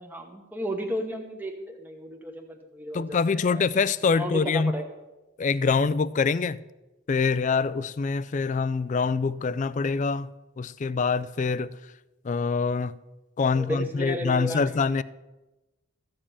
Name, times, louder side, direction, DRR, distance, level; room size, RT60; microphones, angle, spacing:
voice 1, 0.0-3.6 4.1-4.8 13.5-14.6, equal, 10° right, 1.0 m, -34 dB
voice 2, 2.9-4.7 5.4-6.6 7.1-10.3 10.6-11.7 12.2-12.9 13.4-15.0, left 4 dB, 35° left, 0.3 m, -25 dB
14.5 x 5.2 x 8.5 m
head